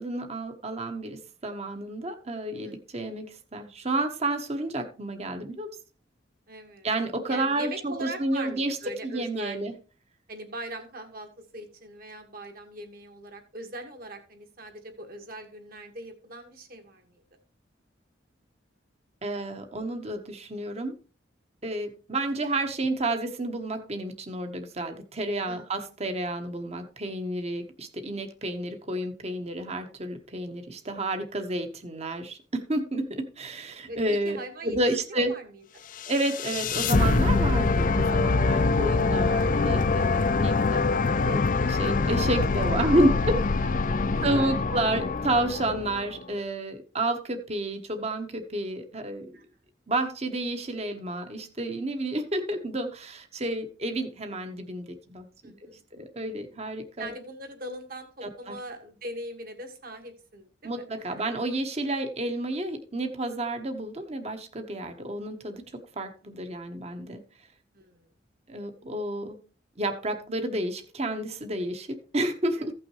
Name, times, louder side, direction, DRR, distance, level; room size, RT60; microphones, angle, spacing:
voice 1, 0.0-5.7 6.8-8.8 9.0-9.7 19.2-21.0 21.6-34.4 34.6-35.3 36.1-41.4 41.7-43.3 44.2-49.3 49.9-57.1 58.2-58.6 60.6-67.2 68.5-69.4 69.8-72.7, right 1 dB, 35° right, 7 dB, 1.1 m, -30 dB
voice 2, 6.5-6.9 7.3-9.6 10.3-11.3 11.5-17.2 25.4-25.7 33.9-34.8 35.1-35.5 35.7-35.8 40.1-40.5 43.9-44.6 49.3-49.4 55.4-55.8 57.0-60.8 61.1-61.2 67.7-68.0 72.6-72.7, right 1 dB, 50° right, 5 dB, 1.8 m, -41 dB
sound 1, 36.0-46.2, left 3 dB, 45° left, 0.5 m, -24 dB
15.5 x 6.0 x 3.1 m, 0.36 s
head